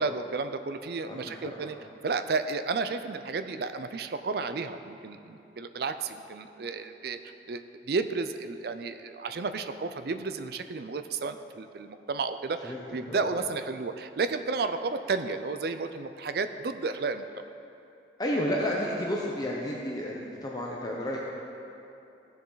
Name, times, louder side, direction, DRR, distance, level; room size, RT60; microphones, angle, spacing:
voice 1, 0.0-1.8 2.0-17.3, right 4 dB, 60° right, 9 dB, 0.5 m, -32 dB
voice 2, 1.1-1.7 12.6-12.8 13.1-13.3 18.2-21.2, left 1 dB, 20° left, -3 dB, 0.8 m, -31 dB
15.5 x 7.1 x 4.0 m, 2.8 s
head